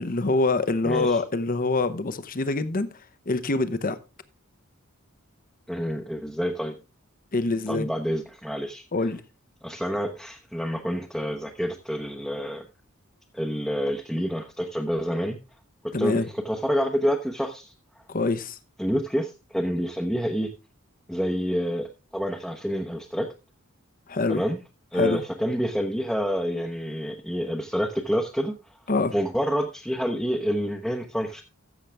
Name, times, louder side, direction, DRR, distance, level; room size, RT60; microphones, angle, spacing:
voice 1, 0.0-2.9 3.3-4.0 7.3-7.9 8.9-9.2 15.9-16.3 18.1-18.6 24.1-24.4 24.9-25.2 28.9-29.1, left 3 dB, 40° left, 0.8 m, -25 dB
voice 2, 0.8-1.2 5.7-6.8 7.7-8.8 9.6-12.7 13.3-15.4 16.0-17.7 18.8-20.5 21.1-23.3 24.3-24.6 24.9-28.5 29.1-31.4, equal, ahead, 0.9 m, -28 dB
13.5 x 7.4 x 3.4 m
head